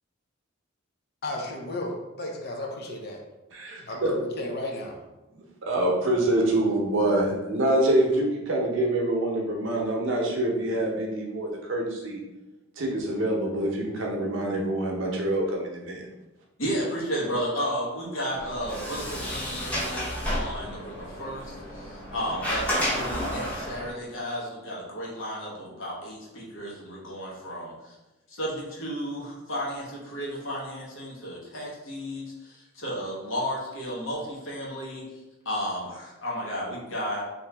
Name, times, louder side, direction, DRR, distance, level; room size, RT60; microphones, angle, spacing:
voice 1, 1.2-3.2 3.9-5.0, left 1 dB, 50° left, 1 dB, 0.6 m, -34 dB
voice 2, 3.5-4.1 5.3-12.2 12.8-16.0, right 1 dB, 65° right, -1 dB, 0.7 m, -26 dB
voice 3, 16.6-27.9 28.3-35.0 35.4-37.2, equal, 70° left, -5 dB, 1.1 m, -33 dB
Sliding door, 18.3-23.9, equal, 5° left, 0.8 m, -31 dB
2.8 x 2.7 x 3.4 m, 1.0 s
head